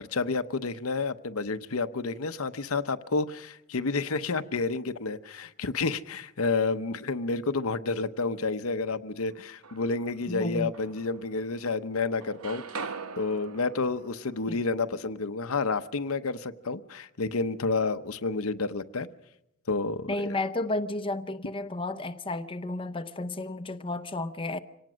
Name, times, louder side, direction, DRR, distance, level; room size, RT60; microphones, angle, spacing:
voice 1, 0.0-12.9 13.2-19.1 19.7-20.4, left 3 dB, 75° left, 0.9 m, -30 dB
sound 1, 9.3-10.2 10.7-11.8 12.0-16.0, right 5 dB, 80° right, 1.1 m, -43 dB
voice 2, 10.3-10.7 14.5-14.6 20.1-24.6, left 2 dB, 25° left, 0.8 m, -32 dB
25.5 x 18.5 x 6.3 m
head